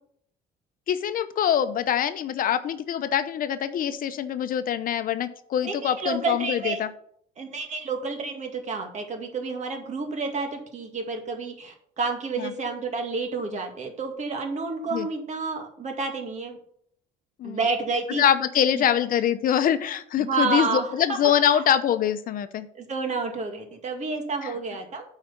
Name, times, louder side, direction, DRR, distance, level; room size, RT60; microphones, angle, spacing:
voice 1, 0.9-6.9 12.4-12.5 14.9-15.1 17.4-17.6 18.2-22.7, left 9 dB, 55° left, 11 dB, 0.7 m, -24 dB
voice 2, 5.6-6.8 7.4-16.6 17.4-18.2 18.7-18.8 20.2-21.2 21.5-21.6 22.7-25.0, right 4 dB, 45° right, 4 dB, 2.1 m, -30 dB
8.6 x 5.0 x 7.0 m, 0.66 s
cardioid pair, 110°, 17 cm